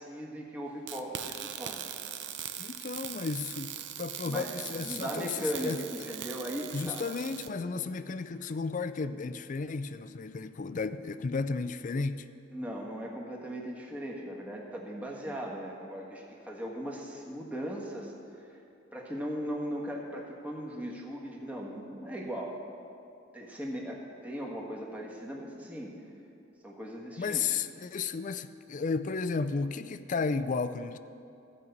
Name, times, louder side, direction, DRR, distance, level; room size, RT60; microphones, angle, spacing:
voice 1, 0.0-1.9 4.2-7.0 12.5-18.6 18.9-22.6 23.3-25.9 26.6-27.4, equal, 10° right, -2 dB, 1.4 m, -38 dB
sound 1, 0.9-7.5, right 10 dB, 60° right, 0.6 m, -41 dB
voice 2, 2.6-5.8 6.2-6.3 6.7-12.2 27.2-31.0, left 4 dB, 40° left, 12 dB, 0.4 m, -33 dB
15.0 x 5.5 x 8.0 m, 2.7 s
head